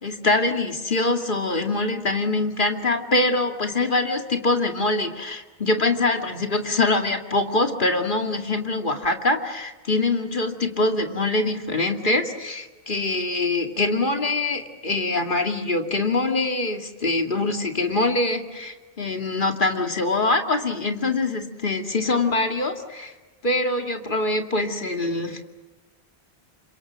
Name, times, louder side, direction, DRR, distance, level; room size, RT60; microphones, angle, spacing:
voice 1, 0.0-23.1 23.4-25.4, left 2 dB, 50° left, 5 dB, 2.4 m, -24 dB
29.5 x 26.0 x 6.3 m, 1.2 s
omnidirectional pair, 1.1 m